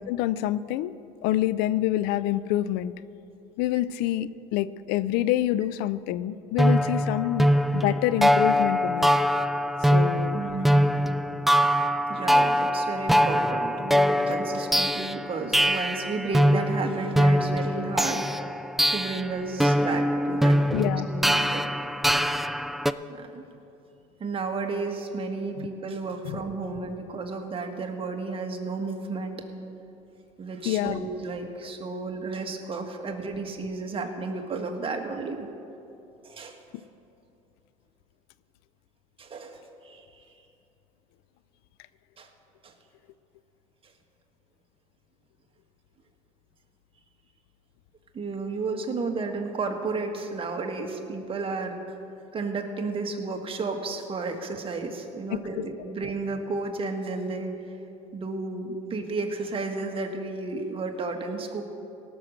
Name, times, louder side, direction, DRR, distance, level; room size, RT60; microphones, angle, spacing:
voice 1, 0.1-0.9 1.2-2.9 3.6-7.5 7.7-9.1 9.8-10.4 20.7-21.1 25.6-25.7 26.2-26.4 30.6-31.0 55.3-55.7, left 14 dB, 75° left, 17 dB, 0.4 m, -27 dB
sound 1, 6.6-22.9, equal, ahead, 0.4 m, -23 dB
voice 2, 10.3-10.9 12.1-18.3 18.9-20.6 21.1-21.7 23.1-23.4 24.2-29.4 30.4-35.5 36.2-36.6 39.2-40.2 42.2-42.3 42.6-42.7 48.1-51.8 52.3-57.8 58.1-61.6, right 3 dB, 35° right, 4 dB, 1.6 m, -32 dB
17.5 x 6.3 x 6.7 m, 2.8 s
supercardioid pair, 90°, 17 cm